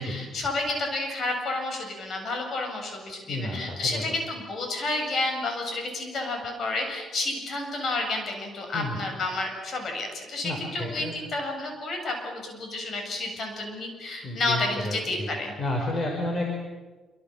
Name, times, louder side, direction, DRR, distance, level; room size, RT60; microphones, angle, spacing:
voice 1, 0.0-15.6, left 2 dB, 50° left, 3 dB, 7.9 m, -30 dB
voice 2, 3.3-4.0 8.7-9.0 10.4-11.1 14.2-16.4, left 1 dB, 35° left, 1 dB, 5.4 m, -31 dB
27.0 x 25.5 x 7.6 m, 1.3 s
cardioid pair, 125°, 0 cm